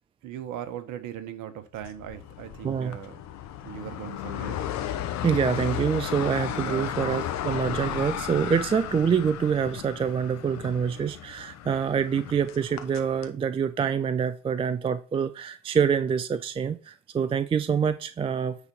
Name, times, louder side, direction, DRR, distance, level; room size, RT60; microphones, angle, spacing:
voice 1, 0.2-3.2 3.6-4.6 6.6-7.0, right 10 dB, 50° right, 1.5 m, -38 dB
sound 1, 1.8-13.3, left 11 dB, 40° left, 1.2 m, -35 dB
voice 2, 2.6-3.0 5.2-18.6, right 7 dB, 15° right, 0.4 m, -26 dB
9.6 x 4.3 x 5.3 m
figure-of-eight pair, 75°, 40 cm